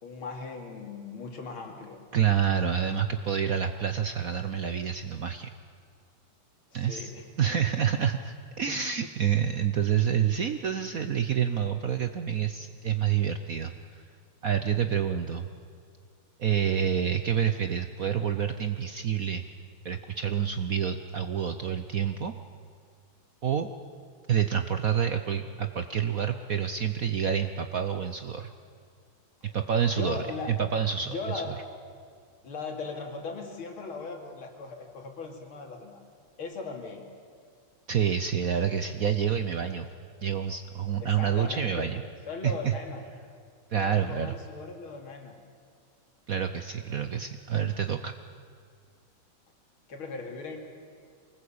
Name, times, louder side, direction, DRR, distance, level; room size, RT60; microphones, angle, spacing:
voice 1, 0.0-2.0 6.7-7.3 8.7-8.8 29.4-29.6 29.9-30.5 31.0-31.6 32.4-36.0 36.4-37.1 41.0-43.0 43.7-45.3 49.9-50.6, left 4 dB, 75° left, 3 dB, 3.4 m, -38 dB
voice 2, 2.1-5.5 6.7-7.1 7.4-14.0 14.4-15.5 16.4-19.4 19.8-22.3 23.4-23.7 24.3-28.5 29.5-31.6 37.9-39.9 40.2-42.0 42.4-42.7 43.7-44.3 46.3-48.1, right 8 dB, 55° right, 8 dB, 1.0 m, -28 dB
24.0 x 19.5 x 8.7 m, 2.1 s
omnidirectional pair, 2.3 m